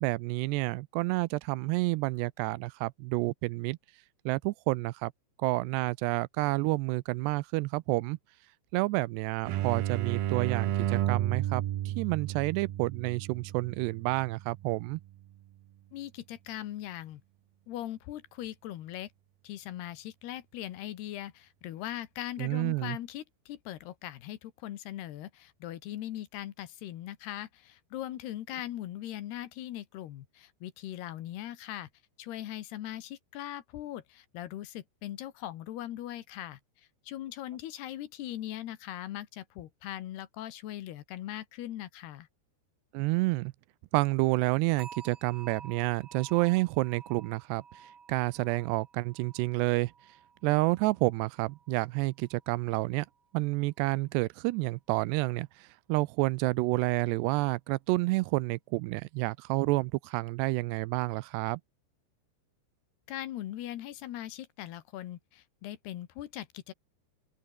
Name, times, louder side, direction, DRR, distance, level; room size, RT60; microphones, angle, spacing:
voice 1, 0.0-3.8 4.3-5.1 5.4-8.2 8.7-15.0 22.4-23.0 42.9-43.5 43.9-49.9 50.4-53.1 53.3-61.6, right 22 dB, 85° right, 2.6 m, -29 dB
sound 1, 9.5-15.0, right 13 dB, 65° right, 2.8 m, -32 dB
voice 2, 15.9-17.2 17.7-19.1 19.4-31.9 32.2-36.6 37.1-42.3 63.1-66.7, left 13 dB, 70° left, 3.3 m, -40 dB
sound 2, 44.8-51.9 52.2-52.5 53.0-53.2, right 6 dB, 35° right, 2.4 m, -52 dB
open air
omnidirectional pair, 5.0 m